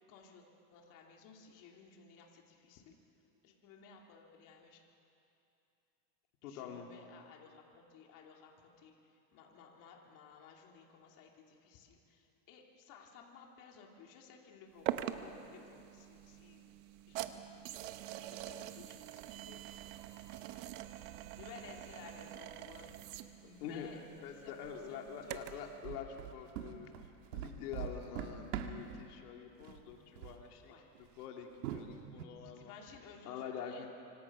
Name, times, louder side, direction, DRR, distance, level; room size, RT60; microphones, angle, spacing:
voice 1, 0.1-2.9 3.4-4.8 6.4-16.8 17.1-17.4 17.6-19.8 20.4-24.0 24.4-25.7 30.7-31.1 32.4-33.9, left 6 dB, 45° left, 1 dB, 2.9 m, -57 dB
voice 2, 6.4-6.9 23.6-26.9 27.3-30.7 31.0-32.7 33.2-33.9, left 7 dB, 85° left, 2 dB, 2.6 m, -46 dB
sound 1, 14.9-25.7, right 13 dB, 60° right, 1.2 m, -45 dB
sound 2, 25.8-29.1 29.6-29.9 30.2-30.4 31.0-31.1 31.6-32.3, right 10 dB, 90° right, 2.0 m, -42 dB
26.0 x 25.0 x 6.1 m, 2.7 s
supercardioid pair, 155°, 44 cm